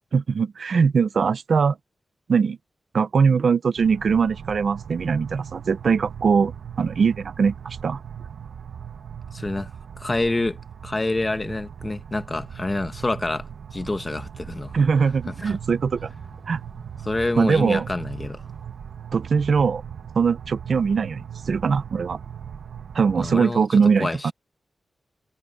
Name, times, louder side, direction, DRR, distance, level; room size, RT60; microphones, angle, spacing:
voice 1, 0.1-1.8 2.3-2.6 2.9-8.0 14.7-16.1 16.5-16.6 17.4-17.9 19.1-19.8 20.2-22.2 22.9-24.3, right 5 dB, 60° right, 0.8 m, -21 dB
sound 1, 3.8-23.4, right 8 dB, 85° right, 1.3 m, -39 dB
voice 2, 9.3-9.7 10.0-10.6 10.8-13.5 13.7-14.9 15.3-15.6 17.0-18.4 23.1-23.7 24.0-24.3, left 2 dB, 20° left, 1.2 m, -27 dB
sound 2, 14.3-19.3, right 2 dB, 20° right, 3.8 m, -50 dB
wide cardioid pair, 155°, 0 cm